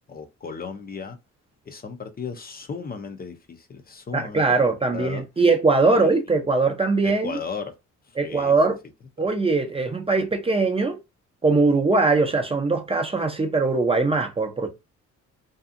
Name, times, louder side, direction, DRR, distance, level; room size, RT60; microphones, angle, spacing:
voice 1, 0.1-1.2 1.7-5.2 5.9-6.1 7.0-7.7 8.0-8.6 9.2-9.3, left 5 dB, 30° left, 0.5 m, -36 dB
voice 2, 4.1-7.4 8.2-8.8 9.2-11.0 11.4-14.7, right 3 dB, 20° right, 0.5 m, -21 dB
2.6 x 2.3 x 2.5 m
cardioid pair, 90°, 30 cm